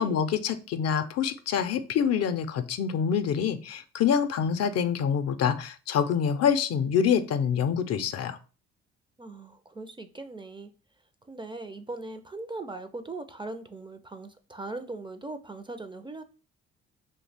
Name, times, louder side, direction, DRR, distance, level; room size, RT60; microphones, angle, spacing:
voice 1, 0.0-8.4, left 7 dB, 55° left, 0.5 m, -26 dB
voice 2, 9.2-10.7 11.2-16.2, right 2 dB, 15° right, 0.4 m, -39 dB
2.8 x 2.1 x 4.0 m
hypercardioid pair, 50°, 30 cm